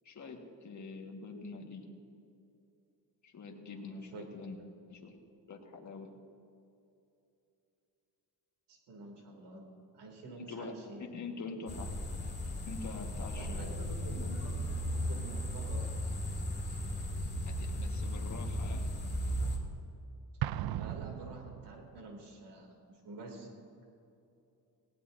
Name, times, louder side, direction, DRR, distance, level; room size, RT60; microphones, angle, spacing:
voice 1, 0.0-1.9 3.2-4.6 4.9-5.2 5.5-6.1 10.5-11.9 12.6-13.7 17.5-18.9, left 4 dB, 45° left, 1 dB, 1.7 m, -45 dB
voice 2, 3.7-4.5 8.7-9.6 9.9-11.1 13.3-15.9 20.7-23.5, right 2 dB, 80° right, 2 dB, 2.9 m, -48 dB
sound 1, 11.7-19.6, equal, 25° left, 2.5 m, -36 dB
Explosion, 20.4-22.1, right 12 dB, 65° right, 0.5 m, -37 dB
18.5 x 17.5 x 2.7 m, 2.7 s
cardioid pair, 100°, 40 cm